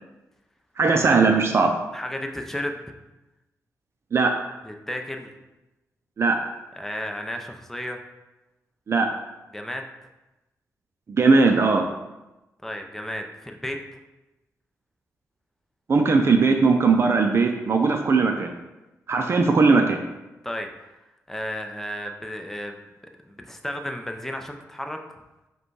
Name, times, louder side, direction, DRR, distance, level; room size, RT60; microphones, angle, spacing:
voice 1, 0.8-1.7 4.1-4.4 6.2-6.4 8.9-9.1 11.1-11.9 15.9-18.5 19.1-20.0, right 4 dB, 50° right, 4 dB, 0.4 m, -19 dB
voice 2, 1.9-2.8 4.6-5.3 6.8-8.0 9.5-9.9 12.6-14.0 20.4-20.7 21.3-22.9 23.2-25.0, left 1 dB, 5° left, 3 dB, 0.5 m, -33 dB
5.0 x 2.3 x 4.6 m, 1.0 s
cardioid pair, 70°, 6 cm